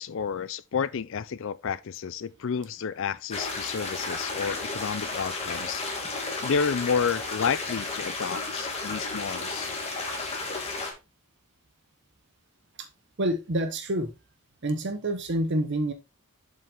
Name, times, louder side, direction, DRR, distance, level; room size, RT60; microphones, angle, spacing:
voice 1, 0.0-5.8 6.4-9.7, left 6 dB, 60° left, 0.4 m, -30 dB
sound 1, 3.3-10.9, left 3 dB, 30° left, 1.8 m, -33 dB
voice 2, 13.2-14.1 14.6-15.9, right 1 dB, 50° right, 0.9 m, -27 dB
7.3 x 5.4 x 3.4 m
head